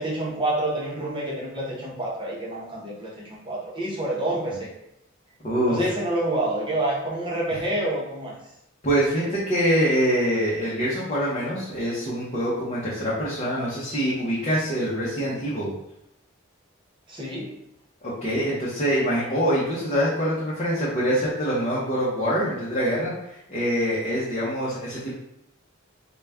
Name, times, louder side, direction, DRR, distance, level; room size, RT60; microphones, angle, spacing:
voice 1, 0.0-4.7 5.7-8.3 17.1-17.6, right 1 dB, 25° right, -4 dB, 0.9 m, -28 dB
voice 2, 5.4-5.9 7.5-7.6 8.8-15.7 18.0-25.2, equal, 35° left, -8 dB, 0.8 m, -25 dB
4.0 x 2.3 x 3.4 m, 0.82 s
head